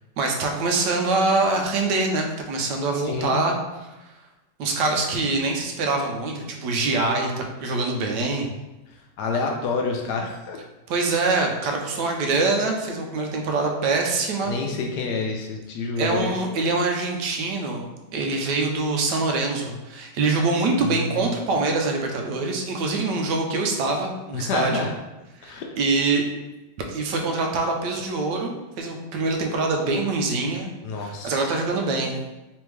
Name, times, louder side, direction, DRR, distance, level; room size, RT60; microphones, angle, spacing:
voice 1, 0.2-3.5 4.6-8.5 10.9-14.6 16.0-17.8 18.1-24.8 25.4-26.2 26.9-28.5 28.8-30.7 31.0-32.1, right 3 dB, 80° right, 2 dB, 1.2 m, -24 dB
voice 2, 3.0-3.4 9.2-10.6 14.5-16.3 20.8-21.3 24.3-24.9 25.4-25.7 30.8-31.4, left 4 dB, 75° left, 2 dB, 1.1 m, -28 dB
3.4 x 3.4 x 3.1 m, 1.0 s
omnidirectional pair, 1.9 m